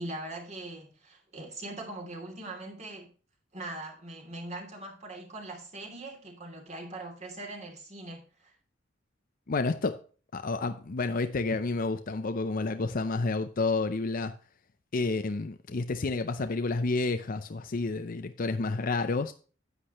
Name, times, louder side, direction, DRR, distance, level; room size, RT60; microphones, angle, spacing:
voice 1, 0.0-3.1 3.5-8.5, right 2 dB, 35° right, 2.8 m, -41 dB
voice 2, 9.5-10.0 10.3-14.3 14.9-19.3, left 3 dB, 45° left, 0.6 m, -30 dB
9.9 x 8.4 x 3.0 m
head